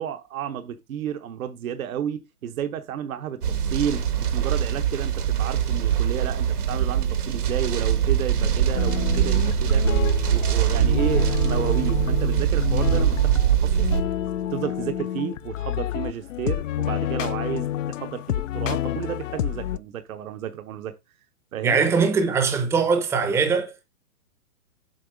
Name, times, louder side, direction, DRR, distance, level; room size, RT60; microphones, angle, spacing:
voice 1, 0.0-9.8 10.3-13.9 14.5-20.9 21.5-21.8, right 9 dB, 65° right, 1.0 m, -32 dB
sound 1, 3.4-14.0, right 9 dB, 85° right, 1.8 m, -22 dB
sound 2, 8.7-19.8, left 12 dB, 60° left, 0.5 m, -29 dB
voice 2, 21.6-23.9, right 5 dB, 5° right, 0.6 m, -22 dB
7.8 x 3.8 x 5.1 m
hypercardioid pair, 140°, 45 cm